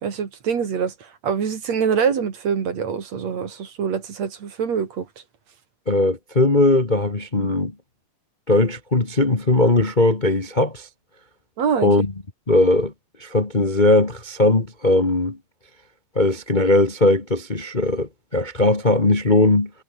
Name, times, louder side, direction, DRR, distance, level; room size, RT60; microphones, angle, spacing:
voice 1, 0.0-5.1 11.6-11.9, right 6 dB, 60° right, 3.8 m, -24 dB
voice 2, 5.9-7.7 8.5-10.9 11.8-12.1 12.5-12.9 13.2-15.4 16.1-19.7, left 2 dB, 20° left, 1.5 m, -19 dB
omnidirectional pair, 3.4 m